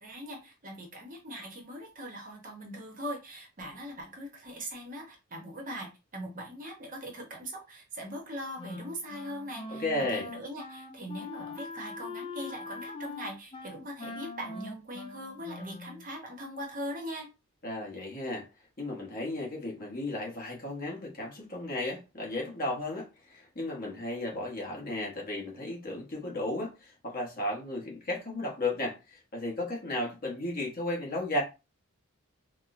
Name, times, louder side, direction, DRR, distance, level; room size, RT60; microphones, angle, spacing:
voice 1, 0.0-9.8 10.1-17.3, equal, 35° right, 0.8 m, -41 dB
Wind instrument woodwind instrument, 8.6-16.1, left 3 dB, 25° left, 0.3 m, -42 dB
voice 2, 9.7-10.3 17.6-18.5 18.8-31.4, left 1 dB, 40° left, 1.0 m, -34 dB
4.4 x 2.1 x 2.5 m
head